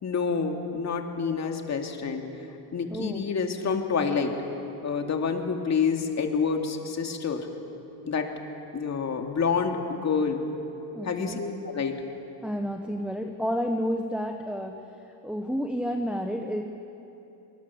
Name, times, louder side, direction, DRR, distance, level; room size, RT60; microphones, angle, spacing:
voice 1, 0.0-2.2 2.7-4.3 4.8-7.5 8.0-8.3 8.7-10.4 11.0-11.9, left 5 dB, 35° left, 4 dB, 2.5 m, -28 dB
voice 2, 2.9-3.2 10.9-11.4 12.4-14.8 15.2-16.6, equal, ahead, 3 dB, 1.2 m, -30 dB
25.5 x 19.5 x 7.2 m, 3.0 s
cardioid pair, 110°, 48 cm